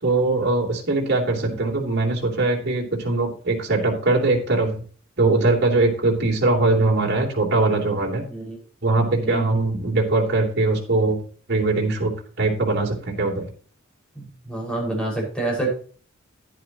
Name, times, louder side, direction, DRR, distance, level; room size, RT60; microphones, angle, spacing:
voice 1, 0.0-4.7 5.2-8.2 8.8-11.2 11.5-13.5, right 2 dB, 55° right, -1 dB, 3.1 m, -21 dB
voice 2, 14.5-15.7, right 2 dB, 5° left, -2 dB, 5.2 m, -27 dB
10.5 x 10.5 x 2.9 m, 0.43 s
head